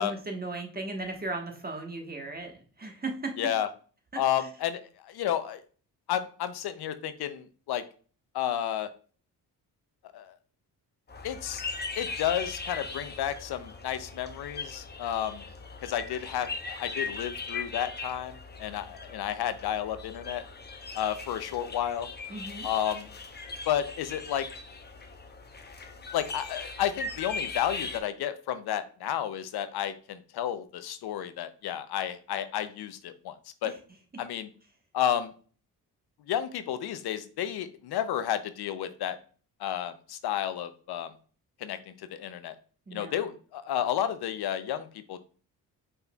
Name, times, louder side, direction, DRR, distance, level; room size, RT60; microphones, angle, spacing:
voice 1, 0.0-3.5 4.1-4.5 22.3-22.7 33.6-33.7 34.1-34.2 42.9-43.3, right 2 dB, 25° right, 3 dB, 1.2 m, -37 dB
voice 2, 3.4-3.7 4.2-5.6 6.1-7.8 8.3-8.9 10.1-10.3 11.2-11.6 12.0-15.4 15.8-20.4 20.9-22.1 22.6-23.1 23.7-24.4 26.1-33.7 34.2-34.5 34.9-35.3 36.3-39.2 39.6-41.1 41.6-42.6 42.9-45.2, left 10 dB, 70° left, 11 dB, 0.6 m, -31 dB
sound 1, 11.1-28.0, left 4 dB, 25° left, 0.8 m, -39 dB
5.3 x 4.2 x 2.3 m, 0.40 s
cardioid pair, 70°, 40 cm